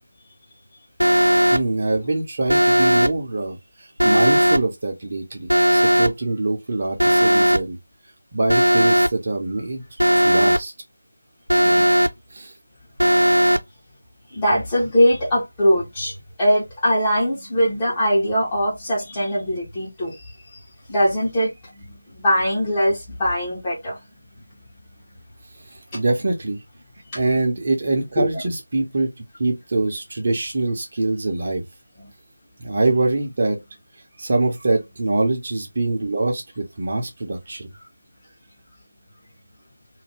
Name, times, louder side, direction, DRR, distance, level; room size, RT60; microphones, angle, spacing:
Alarm, 1.0-1.6 2.5-3.1 4.0-4.6 5.5-6.1 7.0-7.6 8.5-9.1 10.0-10.6 11.5-12.1 13.0-13.6, equal, 90° right, 0.5 m, -16 dB
voice 1, 1.5-7.8 8.3-9.8 10.2-10.7 11.6-11.9 12.3-12.5 25.7-26.6 27.1-29.1 29.4-31.6 32.6-33.6 34.2-37.7, right 2 dB, 35° right, 0.7 m, -24 dB
voice 2, 14.3-20.3 20.9-24.0 27.1-27.2 28.2-28.3 32.0-32.1, equal, 15° left, 1.0 m, -21 dB
2.5 x 2.1 x 3.4 m
figure-of-eight pair, 165°, 0 cm